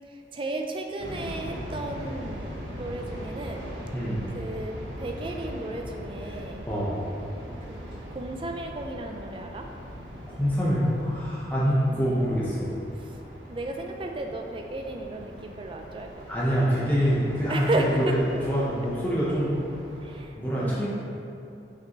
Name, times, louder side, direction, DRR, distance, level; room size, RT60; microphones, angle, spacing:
voice 1, 0.1-2.5 2.8-3.7 4.3-6.6 7.7-9.7 11.9-12.1 13.5-16.3 17.5-18.2 20.0-20.9, right 2 dB, 30° right, 3 dB, 0.4 m, -34 dB
sound 1, 1.0-20.2, equal, 90° right, 1.2 m, -40 dB
voice 2, 6.7-7.0 10.2-12.7 16.3-18.2 18.5-19.5 20.4-20.9, equal, 10° left, -8 dB, 0.8 m, -25 dB
6.0 x 5.4 x 3.0 m, 2.7 s
head